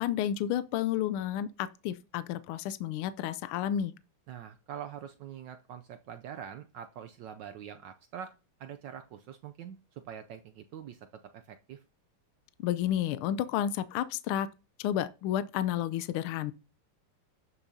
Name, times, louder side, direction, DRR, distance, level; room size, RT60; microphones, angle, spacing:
voice 1, 0.0-3.9 12.6-14.5 14.8-16.5, left 11 dB, 80° left, 1.4 m, -31 dB
voice 2, 4.3-8.3 8.6-11.0 11.3-11.8, right 9 dB, 75° right, 1.1 m, -44 dB
12.0 x 7.0 x 2.7 m
omnidirectional pair, 2.4 m